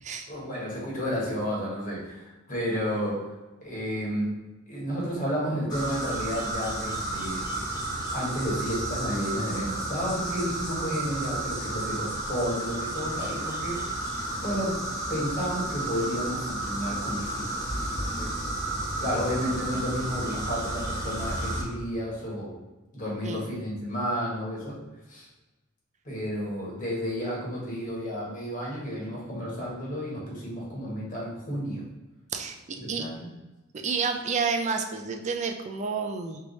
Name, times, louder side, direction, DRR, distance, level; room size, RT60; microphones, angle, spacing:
voice 1, 0.3-3.3 3.6-4.4 4.7-7.7 8.1-13.9 14.4-14.8 15.1-17.6 17.9-18.3 19.0-22.6 22.9-24.8 25.1-25.3 26.0-31.8 32.8-33.3, equal, 40° left, -5 dB, 1.5 m, -31 dB
sound 1, 5.7-21.6, right 2 dB, 20° left, 1.1 m, -32 dB
voice 2, 33.7-36.4, right 5 dB, 35° right, 4 dB, 0.4 m, -30 dB
3.4 x 3.2 x 3.9 m, 1.1 s
head